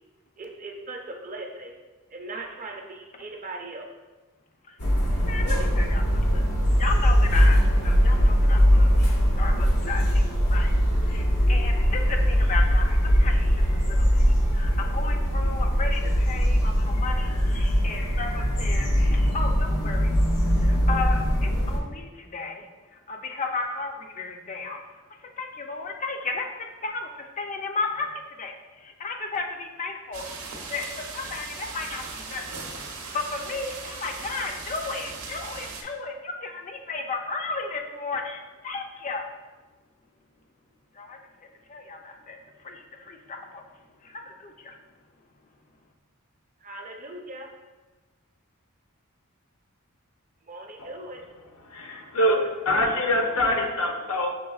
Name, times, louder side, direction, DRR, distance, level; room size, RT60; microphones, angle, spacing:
voice 1, 0.4-1.7 2.1-3.8 46.6-47.5 50.5-51.2, right 2 dB, 35° right, 1 dB, 0.5 m, -39 dB
sound 1, 4.8-21.8, equal, 90° left, 1.0 m, -21 dB
voice 2, 5.3-6.4 6.8-8.9 9.4-10.2 10.5-10.7 11.1-18.9 19.3-20.1 20.6-22.6 23.1-24.8 25.4-28.5 28.8-30.2 30.7-32.7 33.1-39.2 41.0-41.2 41.7-42.4 42.6-43.6 44.0-44.8, left 4 dB, 35° left, 4 dB, 0.4 m, -34 dB
sound 2, 30.1-35.8, right 4 dB, 75° right, 0.7 m, -38 dB
voice 3, 51.6-54.3, left 1 dB, 75° left, 1 dB, 0.7 m, -24 dB
6.1 x 3.3 x 2.3 m, 1.2 s
head